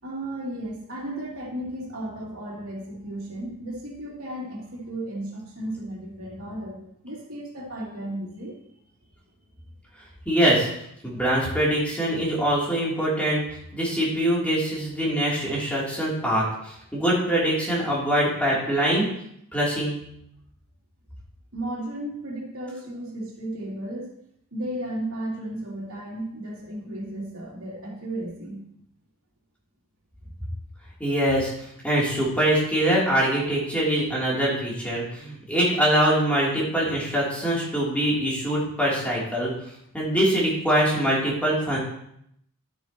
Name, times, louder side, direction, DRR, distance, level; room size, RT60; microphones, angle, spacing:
voice 1, 0.0-8.6 21.5-24.1 24.5-28.6 30.2-30.3, right 1 dB, 70° right, -3 dB, 3.1 m, -34 dB
voice 2, 10.2-10.7 11.0-13.4 13.7-19.1 19.5-20.0 31.0-39.5 39.9-41.8, right 1 dB, 5° left, -6 dB, 3.4 m, -23 dB
11.5 x 9.7 x 3.1 m, 0.74 s
head